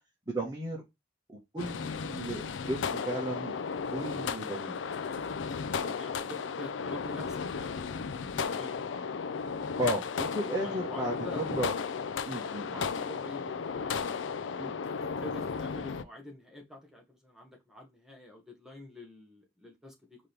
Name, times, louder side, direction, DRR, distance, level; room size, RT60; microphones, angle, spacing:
voice 1, 0.3-0.8 1.3-4.8 9.8-11.7 12.3-12.8 14.6-14.7, right 1 dB, 20° right, 1.3 m, -35 dB
sound 1, 1.6-16.0, left 5 dB, 85° left, 0.4 m, -35 dB
voice 2, 5.5-7.9 8.2-9.2 10.6-11.4 12.3-14.1 14.6-14.9 15.2-20.2, left 2 dB, 5° right, 1.4 m, -47 dB
5.0 x 3.0 x 3.3 m
head